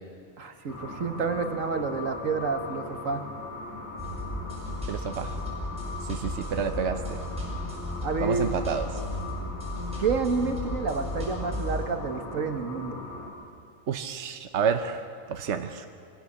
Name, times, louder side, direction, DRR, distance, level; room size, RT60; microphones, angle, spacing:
voice 1, 0.4-3.2 8.0-8.5 10.0-13.0, right 4 dB, 90° right, 6 dB, 1.8 m, -29 dB
sound 1, 0.7-13.3, left 3 dB, 10° left, 4.8 m, -40 dB
sound 2, 4.0-11.8, left 1 dB, 5° right, 7.5 m, -35 dB
voice 2, 4.9-5.4 6.0-7.2 8.2-8.9 13.9-15.9, right 6 dB, 65° right, 7 dB, 1.2 m, -30 dB
24.0 x 16.5 x 7.3 m, 2.3 s
omnidirectional pair, 1.3 m